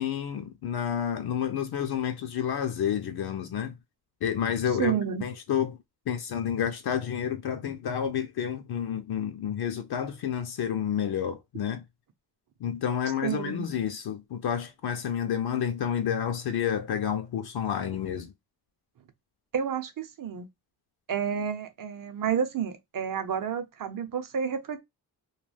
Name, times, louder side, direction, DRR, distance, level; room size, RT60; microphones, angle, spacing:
voice 1, 0.0-3.7 4.2-4.9 5.2-5.8 6.1-11.8 12.6-18.3, left 8 dB, 65° left, 0.6 m, -30 dB
voice 2, 4.8-5.2 13.2-13.7 19.5-20.5 21.1-24.8, right 7 dB, 55° right, 0.7 m, -30 dB
2.3 x 2.2 x 3.3 m
cardioid pair, 90°, 41 cm